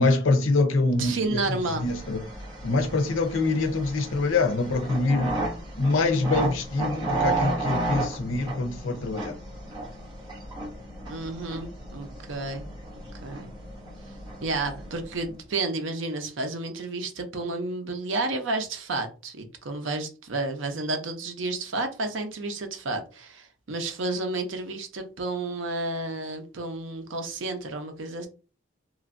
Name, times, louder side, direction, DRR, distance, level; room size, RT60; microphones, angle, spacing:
voice 1, 0.0-2.3 2.6-5.4 5.8-9.4, left 3 dB, 85° left, 0.6 m, -25 dB
voice 2, 1.0-1.9 11.1-12.6 13.2-13.5 14.4-28.3, right 2 dB, 75° right, 0.6 m, -31 dB
sound 1, 1.4-15.3, right 2 dB, 20° right, 0.9 m, -33 dB
3.0 x 2.5 x 2.5 m
head